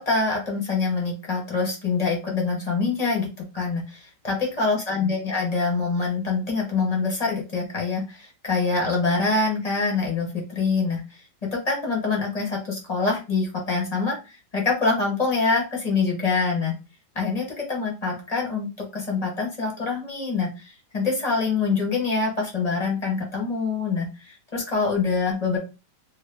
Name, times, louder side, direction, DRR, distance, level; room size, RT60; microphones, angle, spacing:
voice 1, 0.0-3.3 3.5-11.0 11.5-16.7 17.1-25.6, left 4 dB, 35° left, -1 dB, 0.7 m, -25 dB
2.7 x 2.6 x 3.3 m, 0.30 s
omnidirectional pair, 1.8 m